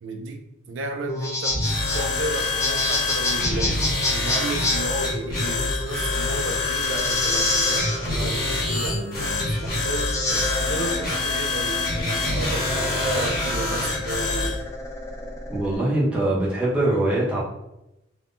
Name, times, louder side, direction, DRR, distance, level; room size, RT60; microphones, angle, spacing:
voice 1, 0.0-1.6 1.9-3.8 4.1-14.6, right 2 dB, 65° right, 4 dB, 0.3 m, -33 dB
sound 1, 1.0-15.8, left 1 dB, 15° left, 0.3 m, -29 dB
sound 2, 1.5-14.6, left 3 dB, 45° left, 1.1 m, -26 dB
voice 2, 15.5-17.4, right 1 dB, 5° right, -7 dB, 0.7 m, -22 dB
3.5 x 2.1 x 2.5 m, 0.90 s
head